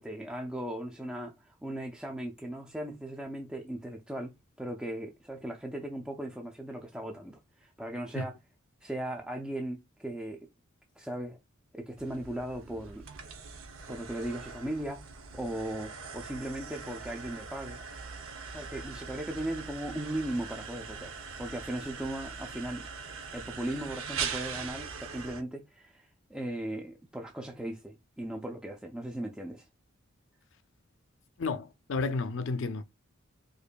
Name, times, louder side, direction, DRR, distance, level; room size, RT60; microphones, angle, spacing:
voice 1, 0.0-8.4 8.8-10.5 11.0-11.4 11.7-13.1 13.9-17.8 18.5-22.9 23.3-29.7, right 1 dB, 5° right, 0.4 m, -38 dB
sound 1, 12.0-25.4, right 5 dB, 75° right, 0.7 m, -41 dB
voice 2, 31.4-32.8, left 3 dB, 65° left, 0.4 m, -32 dB
4.9 x 2.5 x 2.2 m
head